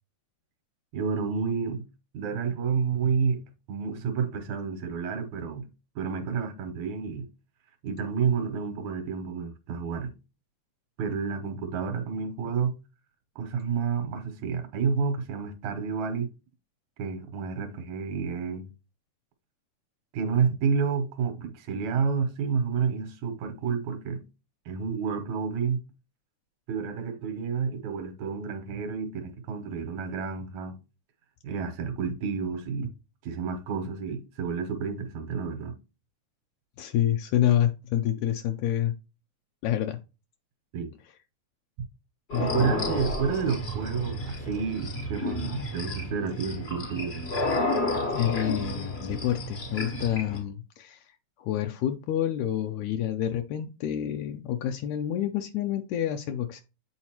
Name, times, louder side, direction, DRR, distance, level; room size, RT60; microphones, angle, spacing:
voice 1, 0.9-1.8 2.1-3.4 3.7-5.7 6.0-7.3 7.8-10.1 11.0-12.7 13.4-16.3 17.0-18.7 20.1-24.2 24.7-25.8 26.7-30.8 31.4-32.9 33.2-35.7 40.7-40.9 42.4-47.2, right 6 dB, 75° right, 2.1 m, -30 dB
voice 2, 36.8-38.9 39.6-40.0 42.3-42.9 48.1-51.1 51.4-56.6, left 11 dB, 80° left, 1.8 m, -28 dB
sound 1, 42.3-50.4, left 1 dB, 65° left, 0.6 m, -31 dB
8.6 x 3.9 x 2.9 m
omnidirectional pair, 3.5 m